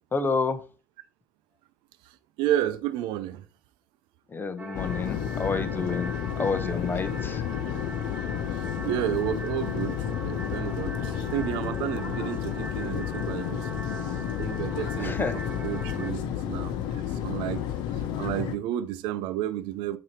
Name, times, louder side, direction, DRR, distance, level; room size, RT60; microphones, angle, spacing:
voice 1, 0.1-0.6 4.3-7.4 15.0-15.4, left 4 dB, 20° left, 0.9 m, -29 dB
voice 2, 2.4-3.4 8.8-13.6 14.4-17.6 17.9-20.0, right 12 dB, 60° right, 0.7 m, -31 dB
sound 1, 4.6-16.1, right 3 dB, 15° right, 0.5 m, -41 dB
sound 2, 4.7-18.6, left 9 dB, 55° left, 1.0 m, -31 dB
8.6 x 3.0 x 4.6 m
hypercardioid pair, 70°, 9 cm